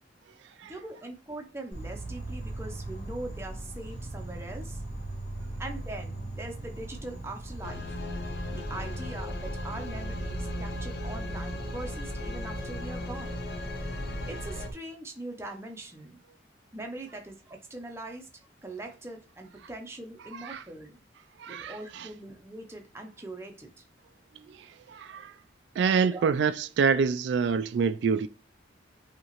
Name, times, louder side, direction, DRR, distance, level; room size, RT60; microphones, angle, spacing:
voice 1, 0.7-4.8 5.6-7.9 8.5-13.4 14.3-16.2 16.7-18.3 18.6-21.0 21.5-23.9 26.1-26.3, right 2 dB, 15° right, 0.6 m, -41 dB
Insect, 1.7-14.7, right 2 dB, 75° left, 2.0 m, -39 dB
sound 1, 7.6-14.7, left 2 dB, 55° left, 0.8 m, -38 dB
voice 2, 21.4-22.1 24.5-25.3 25.8-28.3, right 6 dB, 70° right, 0.3 m, -27 dB
5.4 x 2.9 x 3.0 m
head